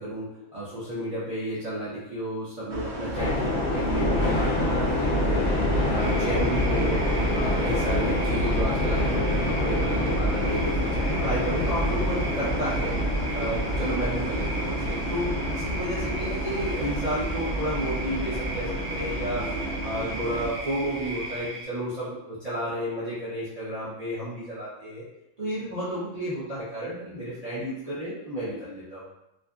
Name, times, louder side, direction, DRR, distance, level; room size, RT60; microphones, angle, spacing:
voice 1, 0.0-5.5 5.8-7.0 7.3-12.9 13.3-19.5 19.8-25.0 25.4-29.0, equal, 40° right, -11 dB, 0.6 m, -32 dB
sound 1, 2.7-20.5, right 2 dB, 70° right, 0.8 m, -34 dB
sound 2, 3.1-21.5, left 1 dB, 50° left, 0.6 m, -27 dB
sound 3, 6.0-21.7, right 1 dB, 85° right, 1.0 m, -38 dB
2.5 x 2.4 x 2.3 m, 0.91 s
omnidirectional pair, 1.3 m